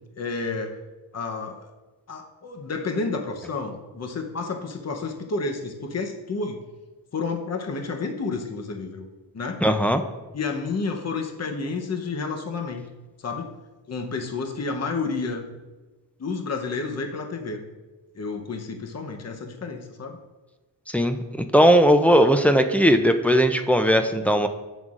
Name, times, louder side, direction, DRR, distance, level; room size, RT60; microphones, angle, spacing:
voice 1, 0.2-0.8 1.1-1.7 2.1-6.6 7.1-9.1 9.3-9.6 10.3-12.8 13.2-13.5 13.9-15.5 16.2-17.6 18.1-20.2, left 4 dB, 35° left, 4 dB, 0.8 m, -30 dB
voice 2, 9.6-10.0 20.9-24.5, equal, 5° left, 6 dB, 0.4 m, -18 dB
11.0 x 8.1 x 2.5 m, 1.2 s
wide cardioid pair, 135°, 43 cm